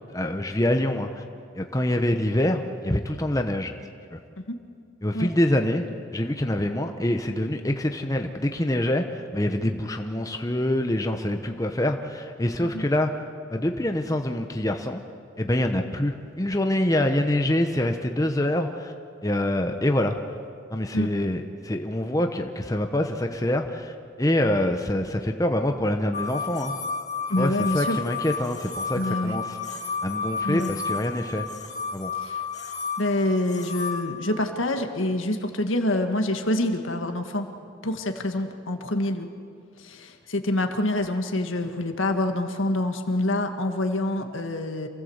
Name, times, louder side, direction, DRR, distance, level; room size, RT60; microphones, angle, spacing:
voice 1, 0.1-1.2 1.5-3.8 4.1-4.2 5.0-13.1 13.5-15.0 15.4-18.9 19.2-20.4 20.7-26.8 27.4-29.6 30.0-31.4 31.9-32.1, left 1 dB, 15° left, 5 dB, 1.0 m, -25 dB
sound 1, 26.1-34.0, left 5 dB, 35° left, 2.3 m, -32 dB
voice 2, 27.3-28.0 28.9-29.4 30.4-30.7 32.2-32.4 33.0-37.5 37.8-39.3 39.8-44.9, left 1 dB, 80° left, 5 dB, 1.9 m, -26 dB
27.5 x 17.0 x 8.1 m, 2.3 s
head